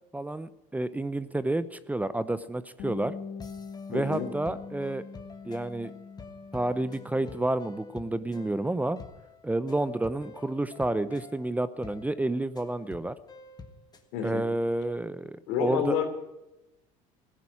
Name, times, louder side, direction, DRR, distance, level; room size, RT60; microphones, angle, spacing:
voice 1, 0.1-3.1 3.9-5.0 5.5-5.9 6.5-9.0 9.4-13.1 14.2-16.0, right 2 dB, 10° right, 14 dB, 0.7 m, -30 dB
Bass guitar, 2.8-7.5 7.8-9.0, left 5 dB, 55° left, 1.6 m, -43 dB
sound 1, 3.4-14.1, left 3 dB, 25° left, 1.7 m, -49 dB
voice 2, 3.9-4.3 14.1-14.4 15.5-16.1, left 8 dB, 80° left, 6 dB, 3.2 m, -29 dB
16.0 x 10.0 x 8.6 m, 0.95 s
supercardioid pair, 100°, 17 cm